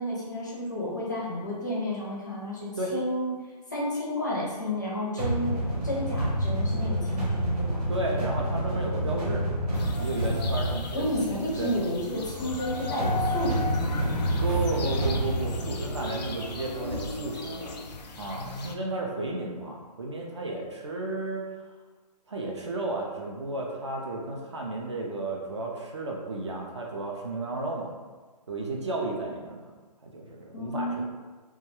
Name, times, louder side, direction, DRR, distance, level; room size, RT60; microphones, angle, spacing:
voice 1, 0.0-3.3 3.7-7.8 10.9-14.4 30.5-31.0, left 1 dB, 30° left, -5 dB, 0.4 m, -31 dB
sound 1, 5.2-17.1, right 1 dB, 70° right, 1.0 m, -29 dB
voice 2, 7.9-9.4 10.0-11.8 14.4-17.8 18.2-21.4 22.3-27.9 28.5-29.7 30.0-31.0, right 2 dB, 45° right, -1 dB, 0.4 m, -33 dB
sound 2, 9.7-18.7, left 4 dB, 85° left, 0.4 m, -37 dB
2.2 x 2.1 x 2.9 m, 1.4 s
hypercardioid pair, 175°, 21 cm